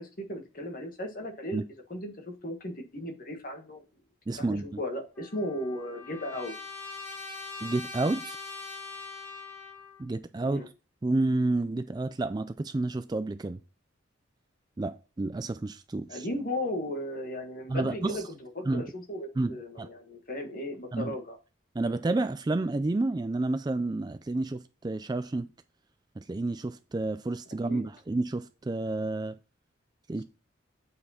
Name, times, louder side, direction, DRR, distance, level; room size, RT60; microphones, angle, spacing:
voice 1, 0.0-1.6 1.9-3.8 4.3-6.5 10.4-10.7 16.1-21.4 27.7-27.9, left 1 dB, 45° left, 1.5 m, -36 dB
voice 2, 4.3-4.8 7.6-8.4 10.0-10.7 11.0-13.6 14.8-16.3 17.7-18.2 18.7-18.9 19.4-19.9 20.9-21.1 21.8-25.5 26.2-29.3 30.1-30.2, right 2 dB, 20° right, 0.3 m, -30 dB
Trumpet, 5.2-10.0, left 4 dB, 10° left, 1.9 m, -42 dB
8.4 x 4.7 x 4.3 m
head